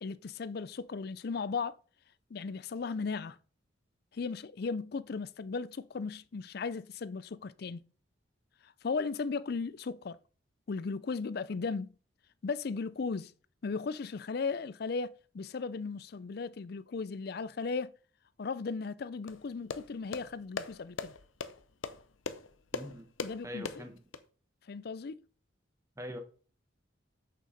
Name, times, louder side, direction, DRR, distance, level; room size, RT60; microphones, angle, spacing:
voice 1, 0.0-1.8 2.3-3.4 4.1-7.9 8.6-10.2 10.7-11.9 12.4-13.3 13.6-17.9 18.4-21.1 23.2-23.8 24.7-25.2, left 4 dB, 55° left, 0.4 m, -36 dB
sound 1, 19.3-24.2, left 4 dB, 90° left, 0.8 m, -41 dB
voice 2, 22.7-23.1 23.4-23.9 26.0-26.2, left 1 dB, 15° right, 1.4 m, -42 dB
8.3 x 6.4 x 4.1 m
head